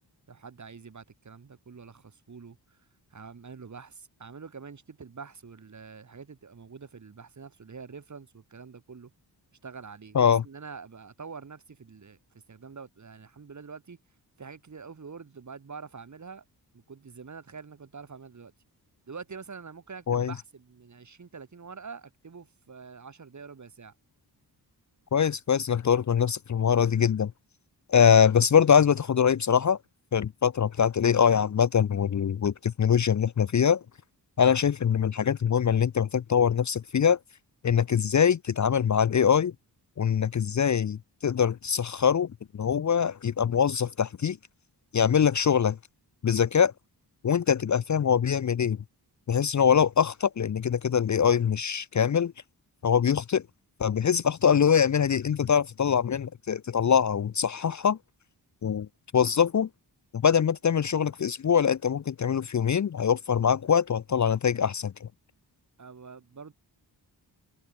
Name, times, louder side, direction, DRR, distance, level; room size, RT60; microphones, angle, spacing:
voice 1, 0.3-2.8 3.1-9.1 9.6-12.2 12.5-14.0 14.4-16.4 16.7-18.5 19.1-23.9 65.8-66.5, right 5 dB, 45° right, 2.2 m, -45 dB
voice 2, 25.1-27.3 27.9-29.8 30.1-33.8 34.4-37.2 37.6-39.5 40.0-42.3 42.5-44.4 44.9-45.8 46.2-46.7 47.2-48.8 49.3-52.3 52.8-53.4 53.8-58.0 58.6-58.9 59.1-59.7 60.1-65.1, left 7 dB, 45° left, 0.6 m, -23 dB
wide cardioid pair, 95°, 42 cm